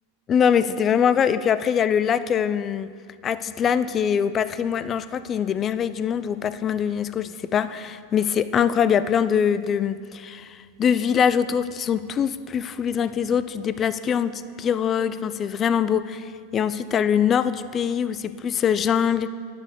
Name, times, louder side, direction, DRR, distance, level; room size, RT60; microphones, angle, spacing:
voice 1, 0.3-2.9 3.2-19.3, left 8 dB, 30° left, 14 dB, 0.4 m, -23 dB
9.7 x 9.1 x 3.7 m, 2.1 s
hypercardioid pair, 105°, 0 cm